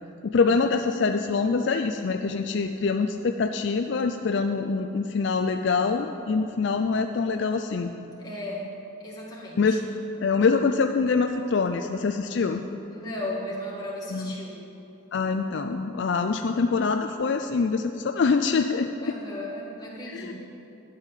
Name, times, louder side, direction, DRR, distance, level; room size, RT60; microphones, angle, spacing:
voice 1, 0.2-7.9 9.6-9.8 10.2-12.6 14.1-14.4 15.1-19.1 20.1-20.3, left 4 dB, 60° left, 6 dB, 0.4 m, -25 dB
voice 2, 8.2-8.7 9.0-9.8 12.9-14.5 19.0-20.3, left 1 dB, 20° left, -5 dB, 2.1 m, -35 dB
12.0 x 5.6 x 9.1 m, 2.8 s
head